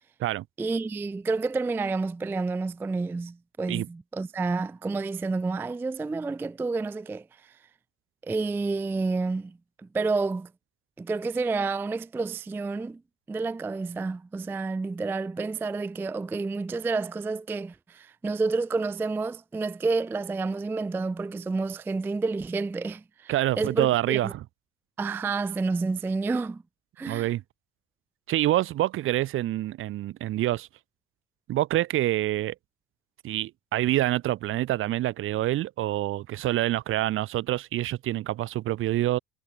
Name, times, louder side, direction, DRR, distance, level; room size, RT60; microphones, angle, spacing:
voice 1, 0.6-7.6 8.2-9.6 9.9-10.5 11.0-13.0 13.3-24.3 25.0-26.6 27.0-27.3, right 3 dB, 10° right, 0.3 m, -29 dB
voice 2, 23.3-24.4 27.1-27.4 28.3-30.7 31.5-32.5 33.2-39.2, right 14 dB, 45° right, 0.6 m, -26 dB
supercardioid pair, 105°, 29 cm